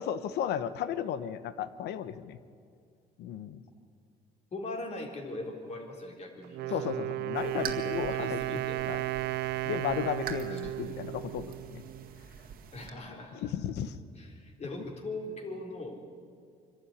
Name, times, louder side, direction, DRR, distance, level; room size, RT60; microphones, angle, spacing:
voice 1, 0.0-2.4 3.2-3.6 6.7-8.6 8.9-9.0 9.6-11.8 13.4-14.0, left 9 dB, 75° left, 13 dB, 1.1 m, -34 dB
voice 2, 4.5-6.9 8.1-8.8 10.5-10.7 12.7-13.5 14.2-16.0, left 2 dB, 40° left, 2 dB, 3.9 m, -40 dB
Wind instrument woodwind instrument, 6.4-12.2, right 16 dB, 80° right, 0.5 m, -34 dB
sound 1, 7.3-12.9, right 7 dB, 60° right, 1.9 m, -45 dB
24.5 x 12.5 x 10.0 m, 2.2 s
cardioid pair, 110°, 17 cm